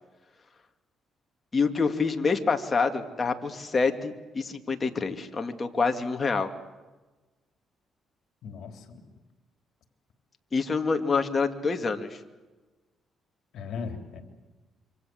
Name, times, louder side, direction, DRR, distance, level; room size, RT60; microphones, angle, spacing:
voice 1, 1.5-6.5 10.5-12.2, left 4 dB, 30° left, 5 dB, 2.5 m, -27 dB
voice 2, 8.4-9.0 13.5-14.2, left 5 dB, 70° left, 6 dB, 3.7 m, -37 dB
27.0 x 25.0 x 8.0 m, 1.2 s
cardioid pair, 90°, 0 cm